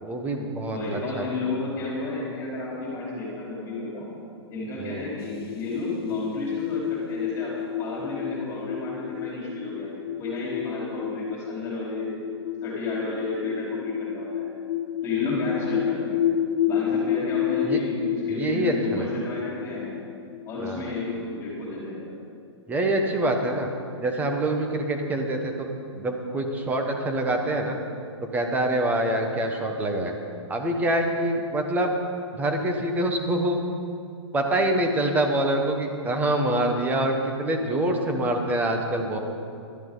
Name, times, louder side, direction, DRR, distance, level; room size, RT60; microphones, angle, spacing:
voice 1, 0.0-0.8 1.1-1.3 4.8-5.0 17.6-17.8 18.3-19.1 20.6-20.9 22.7-23.7 24.0-25.7 25.9-27.8 28.2-30.1 30.5-31.9 32.3-33.6 34.3-39.2, right 1 dB, 10° right, 3 dB, 1.3 m, -25 dB
voice 2, 0.7-4.1 4.5-9.9 10.2-12.3 12.6-14.5 15.0-16.2 16.7-19.9 20.4-22.1, left 2 dB, 20° left, -6 dB, 4.2 m, -32 dB
sound 1, 5.2-21.5, left 10 dB, 55° left, 0.7 m, -30 dB
17.5 x 13.0 x 4.0 m, 2.4 s
hypercardioid pair, 145°, 15 cm